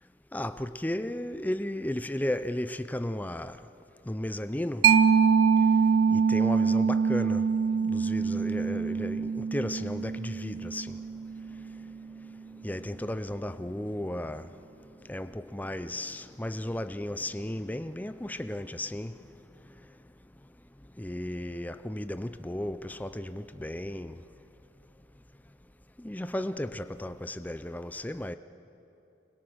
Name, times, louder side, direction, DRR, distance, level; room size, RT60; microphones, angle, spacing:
voice 1, 0.3-3.6 4.1-4.9 6.1-7.4 7.8-11.0 12.6-14.5 15.1-19.2 21.0-24.2 26.0-28.4, left 1 dB, 10° left, 0.5 m, -34 dB
Mallet percussion, 4.8-12.1, right 6 dB, 85° right, 0.6 m, -25 dB
25.0 x 21.0 x 6.4 m
head